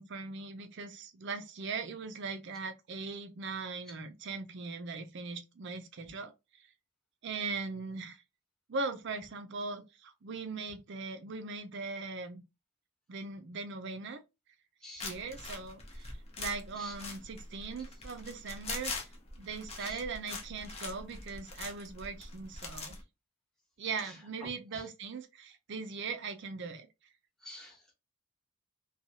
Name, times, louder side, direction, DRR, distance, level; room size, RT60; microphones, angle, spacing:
voice 1, 0.0-6.3 7.2-8.2 8.7-12.4 13.1-14.2 14.9-18.9 19.4-23.0 23.8-26.9, right 4 dB, 55° right, 0.5 m, -40 dB
sound 1, 15.0-23.0, left 3 dB, 30° left, 0.6 m, -43 dB
voice 2, 24.0-24.9 27.4-27.9, left 1 dB, ahead, 1.0 m, -49 dB
2.8 x 2.3 x 2.7 m
head